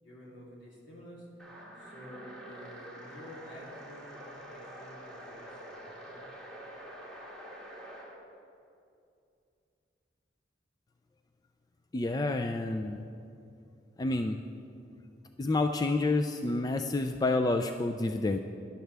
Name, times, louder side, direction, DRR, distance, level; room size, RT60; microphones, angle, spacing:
voice 1, 0.0-1.3 1.8-6.3, equal, 75° left, -5 dB, 3.2 m, -50 dB
sound 1, 1.4-8.1, right 1 dB, 5° left, 2.0 m, -47 dB
voice 2, 11.9-13.0 14.0-14.4 15.4-18.4, left 2 dB, 20° left, 6 dB, 0.3 m, -29 dB
17.0 x 11.5 x 3.4 m, 2.6 s
head